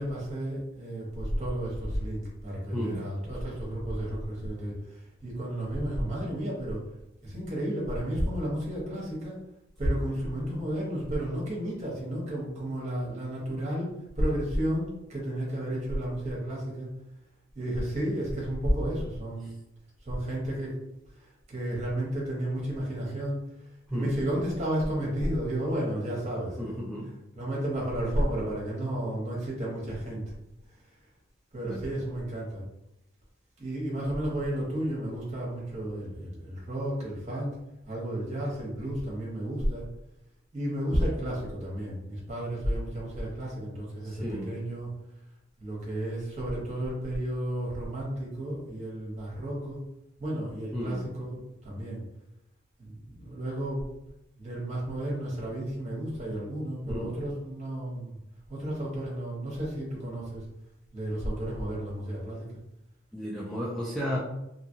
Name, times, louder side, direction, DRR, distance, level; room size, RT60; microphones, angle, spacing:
voice 1, 0.0-6.8 7.2-9.4 9.8-16.9 17.5-19.5 20.0-20.8 21.2-23.5 23.9-26.8 27.4-30.3 31.5-32.6 33.6-37.6 37.9-39.8 40.5-44.9 45.6-49.8 50.2-52.0 52.8-53.8 54.4-58.2 58.5-60.4 60.9-62.5, right 1 dB, 35° right, -4 dB, 1.1 m, -32 dB
voice 2, 2.7-3.0 23.9-24.1 26.6-27.1 31.6-31.8 40.9-41.0 44.0-44.5 50.7-51.0 56.9-57.1 63.1-64.2, equal, ahead, -6 dB, 0.3 m, -33 dB
2.7 x 2.4 x 2.7 m, 0.86 s
head